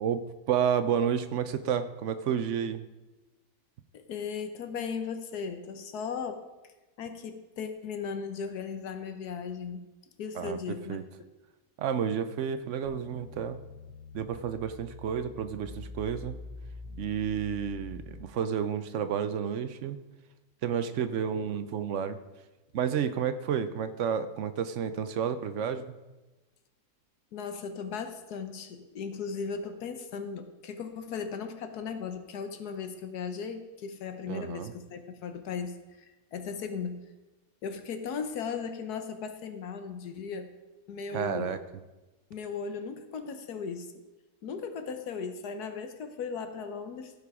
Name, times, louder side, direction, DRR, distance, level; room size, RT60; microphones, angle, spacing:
voice 1, 0.0-2.8 10.4-10.6 10.9-11.0 11.8-13.6 14.1-16.4 17.0-20.0 20.6-22.2 22.7-26.0 34.3-34.7 41.1-41.6, right 8 dB, 60° right, 11 dB, 0.8 m, -31 dB
voice 2, 3.9-6.4 7.0-9.9 10.2-11.0 27.3-37.0 37.6-40.5 40.9-41.6 42.3-43.9 44.4-47.1, left 5 dB, 75° left, 8 dB, 1.4 m, -37 dB
sound 1, 12.8-18.2, left 2 dB, 20° right, 3.5 m, -45 dB
15.5 x 5.3 x 4.8 m, 1.1 s
omnidirectional pair, 1.7 m